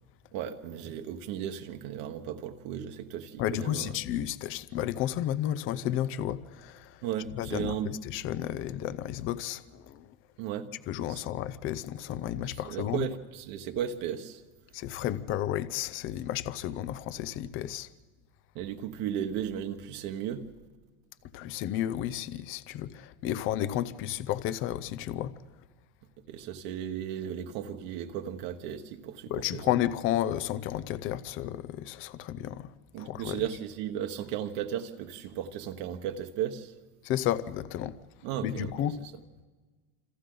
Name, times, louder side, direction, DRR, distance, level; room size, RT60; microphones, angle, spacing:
voice 1, 0.3-3.9 7.0-7.9 10.4-10.7 11.1-11.2 12.6-14.4 18.5-20.5 26.3-29.6 32.9-36.7 38.2-38.7, right 9 dB, 50° right, 1.3 m, -35 dB
voice 2, 3.4-7.0 7.3-10.1 10.9-13.1 14.7-17.9 21.3-25.3 29.3-33.4 37.0-38.0 38.4-39.0, left 12 dB, 30° left, 0.6 m, -32 dB
27.5 x 27.5 x 3.9 m
supercardioid pair, 150°, 44 cm